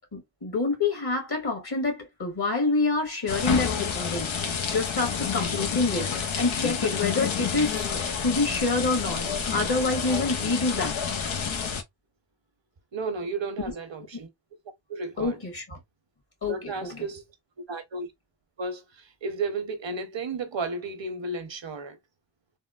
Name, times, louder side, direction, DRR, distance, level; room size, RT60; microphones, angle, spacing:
voice 1, 0.1-7.9 8.2-11.0 15.2-15.8 16.4-17.0, left 3 dB, 55° left, 1.6 m, -27 dB
sound 1, 3.3-11.8, left 6 dB, 85° left, 0.7 m, -29 dB
voice 2, 12.9-14.3 14.9-15.4 16.5-17.2 17.7-18.1 18.6-22.0, right 3 dB, 70° right, 0.9 m, -33 dB
3.5 x 2.1 x 2.3 m
cardioid pair, 45°, 46 cm